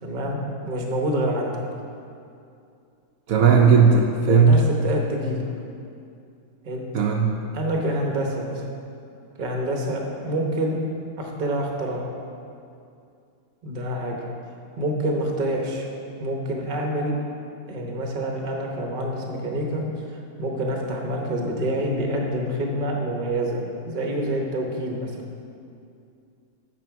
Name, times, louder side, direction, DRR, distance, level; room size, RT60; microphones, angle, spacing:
voice 1, 0.0-1.5 4.3-5.4 6.6-6.8 7.5-8.6 9.4-10.8 11.2-12.0 13.6-14.2 14.8-15.9 16.2-17.1 17.7-23.6 23.9-25.1, right 1 dB, 35° right, 1 dB, 1.0 m, -27 dB
voice 2, 3.3-4.6 6.9-7.3, right 5 dB, 70° right, 1 dB, 1.0 m, -16 dB
9.3 x 6.0 x 4.6 m, 2.5 s
omnidirectional pair, 1.6 m